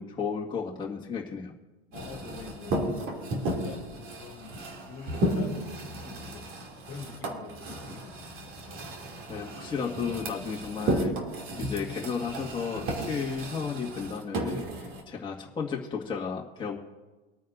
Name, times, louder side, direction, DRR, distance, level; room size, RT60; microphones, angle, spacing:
voice 1, 0.0-1.5 9.3-11.2 11.6-16.8, left 6 dB, 15° left, -3 dB, 1.8 m, -33 dB
voice 2, 1.9-2.9 3.4-4.5 4.9-6.5 6.8-8.3, left 6 dB, 40° left, 2 dB, 2.2 m, -45 dB
sound 1, 1.9-15.0, right 1 dB, 45° right, 2.7 m, -34 dB
25.5 x 9.2 x 2.6 m, 1.2 s
hypercardioid pair, 115°, 31 cm